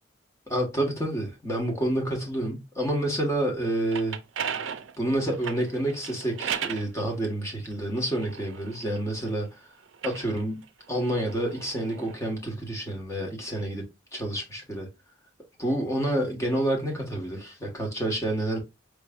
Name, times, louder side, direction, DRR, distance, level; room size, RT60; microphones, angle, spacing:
voice 1, 0.5-4.2 5.0-9.5 10.0-10.6 10.9-13.9 14.1-14.9 15.6-18.6, right 1 dB, 15° left, 1.2 m, -28 dB
sound 1, 3.7-6.9 7.6-9.3 9.9-12.2, right 8 dB, 75° right, 0.4 m, -36 dB
4.7 x 3.0 x 2.3 m
head